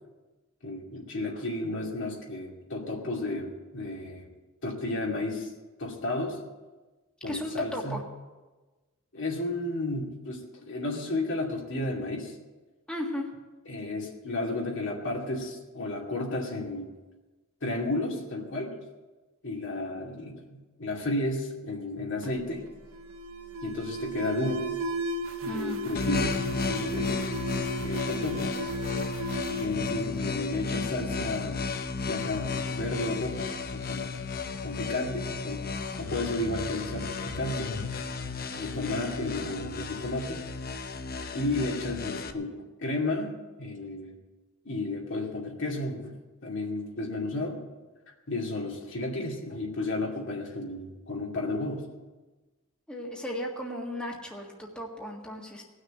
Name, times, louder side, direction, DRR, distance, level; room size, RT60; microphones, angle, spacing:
voice 1, 0.6-4.3 4.6-5.5 5.8-6.4 7.2-8.0 9.1-12.3 13.7-16.9 17.6-18.8 19.4-22.7 23.6-24.7 25.4-27.2 27.8-28.6 29.5-31.6 32.1-34.2 34.6-35.7 36.0-37.8 38.6-40.4 41.3-44.2 44.6-47.6 48.3-51.9, left 2 dB, 65° left, -1 dB, 2.4 m, -33 dB
voice 2, 7.3-8.0 12.9-13.3 25.4-25.8 52.9-55.6, equal, 5° left, -2 dB, 1.7 m, -35 dB
Alarm, 22.2-30.8, right 1 dB, 80° right, 1.2 m, -36 dB
sound 1, 25.9-42.3, left 4 dB, 45° left, 0.8 m, -33 dB
18.0 x 6.5 x 8.3 m, 1.2 s
head